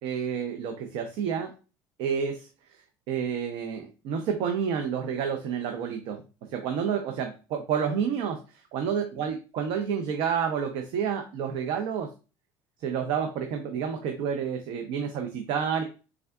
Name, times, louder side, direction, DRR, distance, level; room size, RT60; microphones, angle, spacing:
voice 1, 0.0-1.5 2.0-2.5 3.1-6.2 6.5-8.4 8.7-12.1 12.8-15.8, right 7 dB, 65° right, 5 dB, 0.5 m, -29 dB
3.5 x 3.3 x 2.3 m, 0.34 s
cardioid pair, 140°, 9 cm